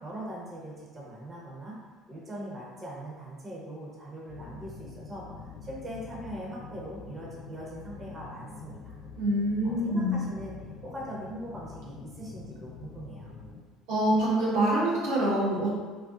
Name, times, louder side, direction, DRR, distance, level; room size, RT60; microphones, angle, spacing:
voice 1, 0.0-1.8 2.1-9.0 9.6-13.3, right 1 dB, 25° right, -4 dB, 0.7 m, -41 dB
sound 1, 4.3-13.6, left 4 dB, 50° left, 0.4 m, -46 dB
voice 2, 9.2-10.2 13.9-15.7, right 1 dB, 70° right, -7 dB, 0.7 m, -25 dB
2.6 x 2.3 x 2.3 m, 1.5 s
hypercardioid pair, 60°, 0 cm